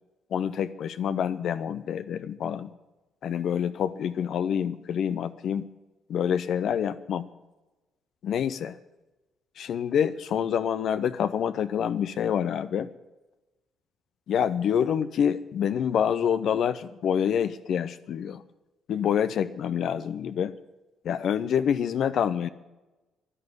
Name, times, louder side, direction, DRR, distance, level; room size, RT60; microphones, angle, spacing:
voice 1, 0.3-2.7 3.2-5.7 6.1-7.3 8.2-8.8 9.6-12.9 14.3-18.4 18.9-20.5 21.0-22.5, left 8 dB, 65° left, 11 dB, 0.6 m, -27 dB
11.0 x 11.0 x 9.5 m, 1.1 s
hypercardioid pair, 50°, 0 cm